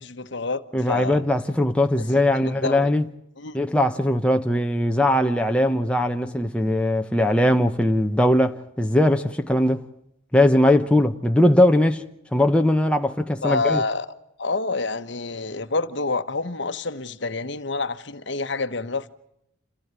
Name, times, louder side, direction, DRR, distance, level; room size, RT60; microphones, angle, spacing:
voice 1, 0.0-1.2 2.0-2.1 2.3-2.9 3.4-3.6 13.4-14.1 14.4-19.1, left 3 dB, 55° left, 1.2 m, -28 dB
voice 2, 0.7-3.0 3.5-9.8 10.3-12.0 12.3-13.8, left 1 dB, 5° left, 0.9 m, -20 dB
28.0 x 15.5 x 9.6 m
head